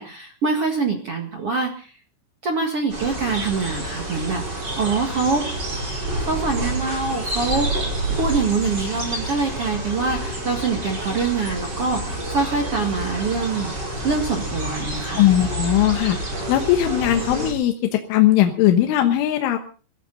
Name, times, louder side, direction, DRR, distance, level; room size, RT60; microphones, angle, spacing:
voice 1, 0.0-1.9 2.4-5.4 6.1-13.7 14.0-15.2, right 4 dB, 75° right, 3 dB, 1.3 m, -24 dB
sound 1, 2.9-17.5, right 2 dB, 20° right, 4.9 m, -28 dB
voice 2, 15.2-16.2 16.5-19.6, left 12 dB, 75° left, 5 dB, 3.5 m, -19 dB
24.0 x 15.0 x 4.0 m, 0.39 s
omnidirectional pair, 6.0 m